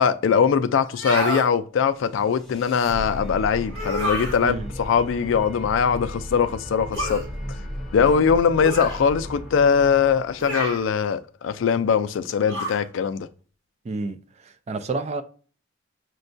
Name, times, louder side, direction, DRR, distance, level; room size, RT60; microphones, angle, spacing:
voice 1, 0.0-7.2 7.9-13.3, left 6 dB, 70° left, 0.3 m, -21 dB
sound 1, 0.9-1.5 3.7-4.4 6.9-7.3 8.6-9.0 10.4-10.9 12.5-12.8, equal, 65° right, 1.8 m, -28 dB
sound 2, 1.9-11.0, equal, ahead, 0.8 m, -36 dB
voice 2, 13.8-14.2 14.7-15.2, right 3 dB, 35° right, 0.4 m, -28 dB
6.2 x 2.3 x 2.5 m
head